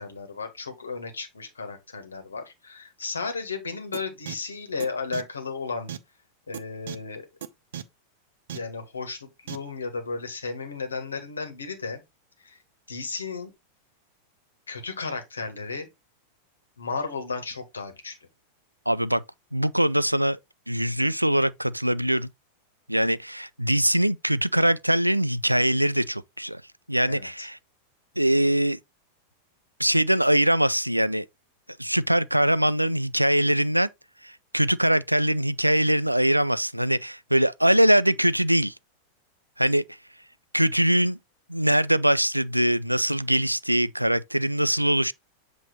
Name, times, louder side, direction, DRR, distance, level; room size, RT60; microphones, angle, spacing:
voice 1, 0.0-5.9 6.5-7.3 8.5-12.0 12.4-12.6 12.9-13.5 14.7-15.9 16.8-18.2 27.1-27.5, left 4 dB, 75° left, 1.5 m, -34 dB
sound 1, 3.9-4.0 4.3-4.4 4.8-4.9 5.1-5.2 5.9-6.0 6.5-6.6 6.9-7.0 7.4-7.5 7.7-7.8 8.5-8.6 9.5-9.6, right 10 dB, 60° right, 0.6 m, -34 dB
voice 2, 18.9-19.2 19.5-20.4 20.7-22.3 22.9-26.6 26.9-27.6 28.2-28.8 29.8-31.3 31.8-33.9 34.2-38.7 39.6-39.8 40.5-41.2 41.5-45.1, right 1 dB, 90° right, 0.3 m, -22 dB
7.6 x 3.0 x 4.2 m
figure-of-eight pair, 90°, 0 cm